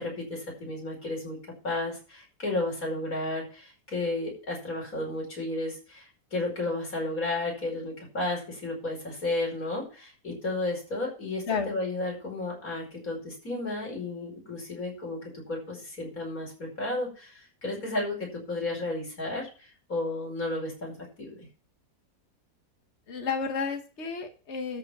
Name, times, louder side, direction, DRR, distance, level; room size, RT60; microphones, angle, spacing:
voice 1, 0.0-1.4 1.6-21.5, left 2 dB, 70° left, -1 dB, 5.6 m, -33 dB
voice 2, 23.1-24.8, left 5 dB, 50° left, 4 dB, 1.8 m, -31 dB
13.0 x 5.3 x 6.8 m, 0.35 s
omnidirectional pair, 1.5 m